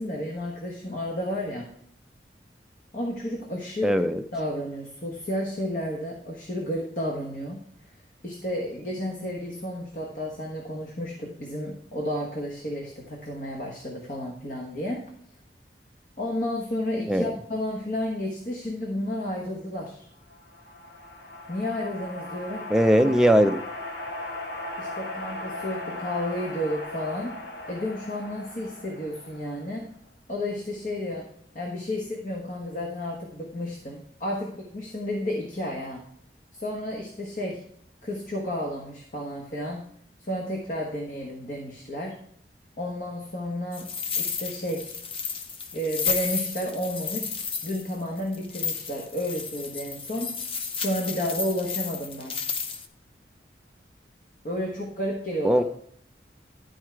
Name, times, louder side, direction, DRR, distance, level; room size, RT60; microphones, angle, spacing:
voice 1, 0.0-1.7 2.9-7.6 8.2-15.0 16.2-20.1 21.5-22.7 24.8-27.4 27.7-29.9 30.3-31.3 31.5-36.0 36.5-37.6 38.0-39.8 40.2-42.2 42.8-43.9 44.2-44.9 45.7-47.3 47.6-50.3 50.8-52.4 54.4-55.6, left 1 dB, 45° left, -1 dB, 1.3 m, -32 dB
voice 2, 3.8-4.2 17.1-17.4 22.7-23.6 55.4-55.6, equal, 5° right, 6 dB, 0.4 m, -20 dB
sound 1, 20.3-29.8, left 1 dB, 70° left, 1.1 m, -38 dB
sound 2, 43.7-52.9, left 6 dB, 30° left, 0.7 m, -32 dB
11.5 x 4.7 x 4.5 m, 0.68 s
head